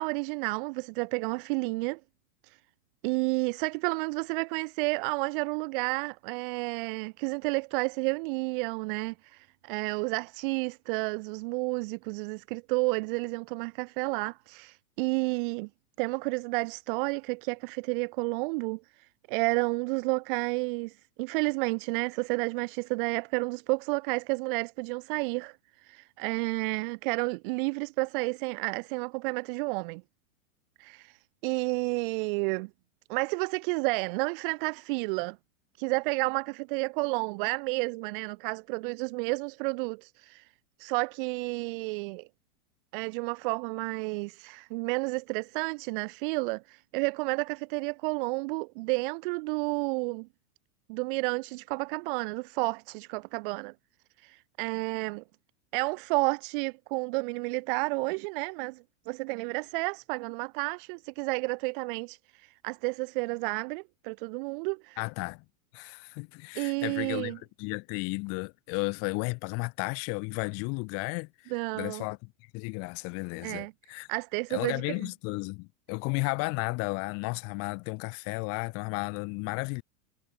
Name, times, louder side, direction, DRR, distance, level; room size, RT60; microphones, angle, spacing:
voice 1, 0.0-2.0 2.4-2.6 3.0-15.7 16.0-25.6 25.8-30.0 30.8-32.7 33.1-35.4 35.8-40.5 40.8-42.3 42.9-50.3 50.9-53.7 54.2-55.2 55.7-65.0 66.6-67.4 71.5-72.0 73.4-73.7 74.1-75.1, right 28 dB, 40° right, 2.0 m, -31 dB
voice 2, 65.0-65.4 65.7-74.1 74.5-79.8, left 32 dB, 35° left, 2.6 m, -34 dB
supercardioid pair, 165°, 43 cm